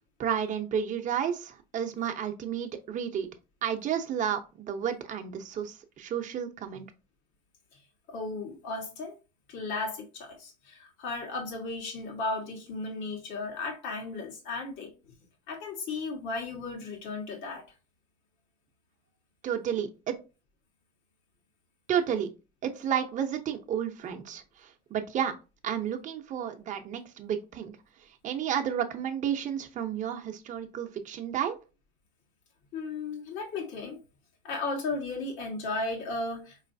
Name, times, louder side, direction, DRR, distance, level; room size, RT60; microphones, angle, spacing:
voice 1, 0.2-3.3 3.6-6.9 19.4-20.1 21.9-22.3 22.6-25.4 25.6-27.7 28.2-31.6, right 8 dB, 40° right, 0.7 m, -31 dB
voice 2, 8.1-9.1 9.5-14.9 15.5-17.6 32.7-34.0 34.4-36.7, left 3 dB, 80° left, 1.6 m, -35 dB
4.8 x 3.1 x 2.6 m
cardioid pair, 160°, 20 cm